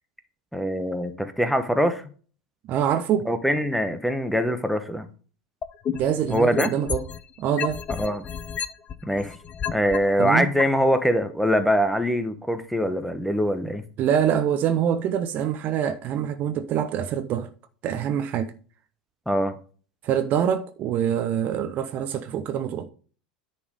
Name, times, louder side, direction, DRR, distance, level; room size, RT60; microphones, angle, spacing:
voice 1, 0.5-2.0 3.3-5.1 6.3-6.7 8.0-8.3 9.0-9.3 9.7-13.8 19.3-19.6, equal, ahead, 1.1 m, -23 dB
voice 2, 2.7-3.3 5.9-7.1 7.4-7.8 10.2-10.5 14.0-17.5 17.8-18.5 20.0-22.9, right 9 dB, 45° right, 0.7 m, -25 dB
sound 1, 5.6-7.2 7.6-10.0 10.6-10.7, left 7 dB, 35° left, 0.7 m, -30 dB
9.9 x 4.3 x 5.2 m
figure-of-eight pair, 80°, 4 cm